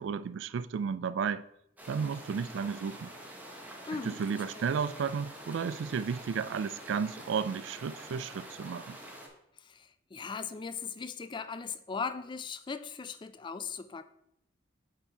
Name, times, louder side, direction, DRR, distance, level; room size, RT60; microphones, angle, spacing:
voice 1, 0.0-1.4 1.9-3.1 3.9-9.0, right 6 dB, 80° right, 0.3 m, -33 dB
sound 1, 1.8-9.3, right 1 dB, 10° right, 1.1 m, -47 dB
voice 2, 3.9-4.7 9.6-14.0, left 5 dB, 25° left, 0.3 m, -39 dB
7.5 x 4.2 x 4.5 m
head